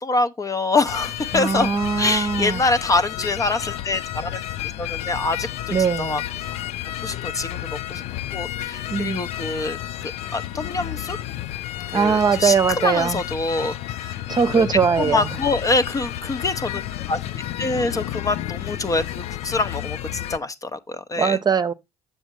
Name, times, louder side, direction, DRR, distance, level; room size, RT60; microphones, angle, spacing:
voice 1, 0.0-1.7 2.0-4.4 4.8-6.2 7.0-8.0 8.3-9.8 10.3-11.2 11.9-12.5 12.8-14.2 14.5-14.7 15.0-16.8 17.1-21.4, left 3 dB, 30° left, 0.7 m, -25 dB
sound 1, 0.9-20.4, left 13 dB, 65° left, 0.4 m, -31 dB
voice 2, 1.3-2.6 5.7-6.2 8.9-9.2 11.9-13.2 14.3-15.3 21.2-21.7, right 6 dB, 35° right, 0.7 m, -21 dB
7.1 x 6.6 x 3.0 m
supercardioid pair, 65°, 12 cm